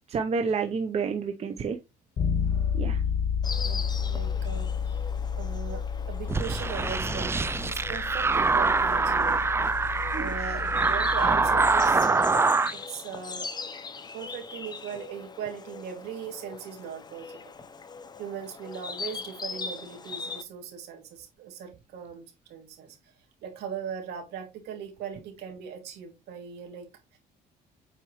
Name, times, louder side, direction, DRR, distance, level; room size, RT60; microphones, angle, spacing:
voice 1, 0.1-1.8 2.7-3.0 10.1-10.3, right 5 dB, 40° right, 5 dB, 0.8 m, -29 dB
Bass guitar, 2.2-12.0, left 7 dB, 45° left, 2.1 m, -31 dB
Insect, 3.4-20.4, left 5 dB, 25° left, 0.8 m, -41 dB
voice 2, 3.6-5.0 5.4-9.5 10.1-12.4 12.9-13.5 14.1-17.4 18.2-23.1 23.4-27.2, right 8 dB, 80° right, 3 dB, 2.6 m, -39 dB
sound 1, 6.3-12.7, right 4 dB, 15° right, 0.4 m, -24 dB
8.0 x 4.6 x 3.1 m, 0.25 s
cardioid pair, 110°, 17 cm